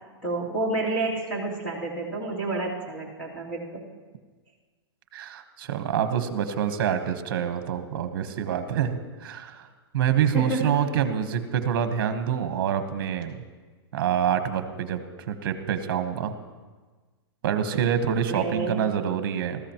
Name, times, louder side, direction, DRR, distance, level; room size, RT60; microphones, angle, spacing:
voice 1, 0.2-3.8 10.3-11.0 18.3-18.8, right 2 dB, 10° left, -6 dB, 2.6 m, -29 dB
voice 2, 5.1-9.7 9.9-13.4 13.9-16.3 17.4-19.6, right 8 dB, 50° right, 9 dB, 1.1 m, -26 dB
19.5 x 14.5 x 3.0 m, 1.4 s
supercardioid pair, 175°, 14 cm